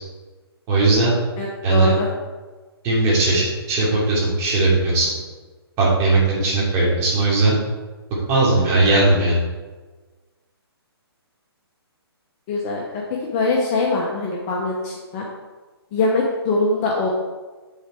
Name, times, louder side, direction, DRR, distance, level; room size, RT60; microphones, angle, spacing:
voice 1, 0.7-1.1 1.6-1.9 2.8-5.1 5.8-7.5 8.3-9.4, right 2 dB, 20° right, -6 dB, 2.9 m, -18 dB
voice 2, 1.4-2.1 12.5-12.8 13.2-15.3 15.9-17.1, left 3 dB, 20° left, -2 dB, 0.9 m, -22 dB
7.9 x 6.6 x 4.6 m, 1.3 s
hypercardioid pair, 155°, 14 cm